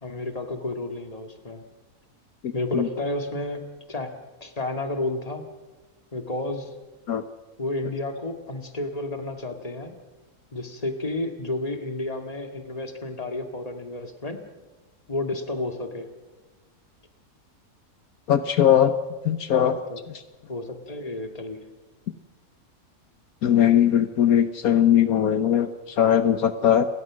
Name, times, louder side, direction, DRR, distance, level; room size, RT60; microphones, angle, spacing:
voice 1, 0.0-1.6 2.5-4.1 4.4-5.4 6.1-6.7 7.6-9.9 10.5-14.4 15.1-16.1 19.5-20.0 20.5-21.6, left 2 dB, 25° left, 6 dB, 2.2 m, -31 dB
voice 2, 2.4-2.9 7.1-7.2 18.3-18.9 19.2-19.7 23.4-26.9, left 10 dB, 70° left, 10 dB, 1.4 m, -20 dB
29.5 x 22.0 x 6.3 m, 1.2 s
omnidirectional pair, 1.6 m